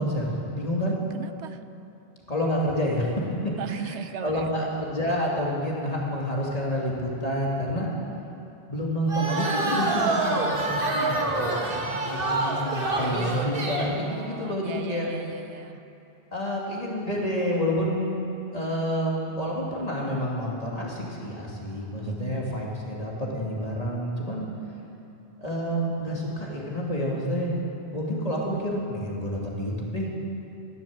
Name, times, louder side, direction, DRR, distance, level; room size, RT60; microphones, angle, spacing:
voice 1, 0.0-1.0 2.3-3.1 3.7-7.9 8.7-15.1 16.3-18.2 18.5-24.5 25.4-27.6 27.9-30.1, equal, 35° left, -3 dB, 2.7 m, -29 dB
voice 2, 1.1-1.6 3.6-4.7 13.1-15.8 22.0-22.7, right 8 dB, 85° right, 11 dB, 1.0 m, -38 dB
sound 1, 9.1-14.0, right 2 dB, 55° right, 1.7 m, -26 dB
15.0 x 12.0 x 7.6 m, 3.0 s
omnidirectional pair, 1.1 m